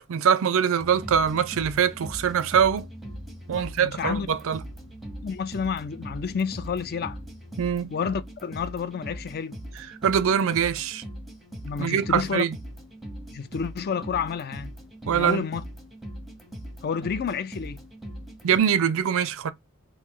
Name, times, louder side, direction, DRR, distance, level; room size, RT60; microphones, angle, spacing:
voice 1, 0.0-2.9 3.5-4.6 7.6-7.9 10.0-11.0 11.8-12.5 15.1-15.4 18.4-19.5, right 8 dB, 65° right, 0.4 m, -23 dB
sound 1, 0.8-18.6, equal, ahead, 0.7 m, -40 dB
voice 2, 3.5-4.3 5.2-7.2 7.9-9.6 11.6-12.5 13.3-14.7 15.1-15.6 16.8-17.8, left 6 dB, 45° left, 0.4 m, -30 dB
3.1 x 2.6 x 3.6 m
head